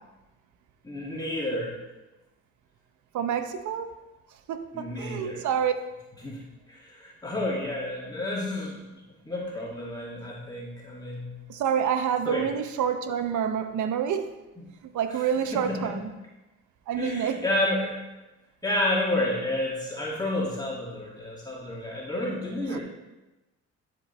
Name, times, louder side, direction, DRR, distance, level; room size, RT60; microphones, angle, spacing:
voice 1, 0.8-1.7 4.7-5.5 6.2-6.4 6.7-9.0 9.3-11.4 12.3-12.5 14.6-14.7 15.1-16.0 17.0-18.0 18.6-22.8, left 1 dB, 15° left, -5 dB, 2.0 m, -30 dB
voice 2, 3.1-3.9 4.5-5.7 11.5-14.3 14.9-16.1 16.9-17.4, right 8 dB, 75° right, 9 dB, 0.7 m, -27 dB
10.0 x 5.0 x 4.3 m, 1.1 s
cardioid pair, 90°, 30 cm